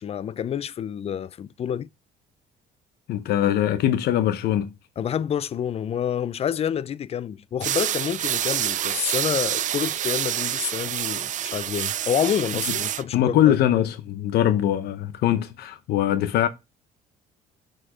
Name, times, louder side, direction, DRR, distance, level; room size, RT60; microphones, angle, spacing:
voice 1, 0.0-1.9 5.0-13.6, left 9 dB, 35° left, 0.5 m, -28 dB
voice 2, 3.1-4.7 13.1-16.5, left 11 dB, 70° left, 0.9 m, -22 dB
sound 1, 7.6-13.0, right 11 dB, 50° right, 0.4 m, -27 dB
6.3 x 5.0 x 4.9 m
cardioid pair, 110°, 17 cm